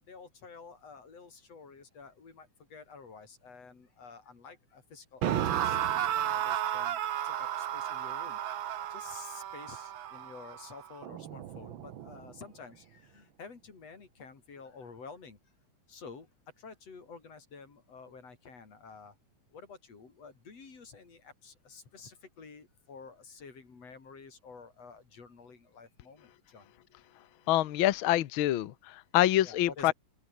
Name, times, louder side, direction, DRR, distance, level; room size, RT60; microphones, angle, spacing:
voice 1, 0.0-8.4 8.9-15.4 15.9-16.3 16.6-19.2 19.5-26.7 29.4-29.9, left 5 dB, 55° left, 5.3 m, -50 dB
sound 1, 5.2-12.3, right 10 dB, 60° right, 1.3 m, -33 dB
voice 2, 27.5-29.9, left 14 dB, 75° left, 1.1 m, -26 dB
open air
omnidirectional pair, 3.6 m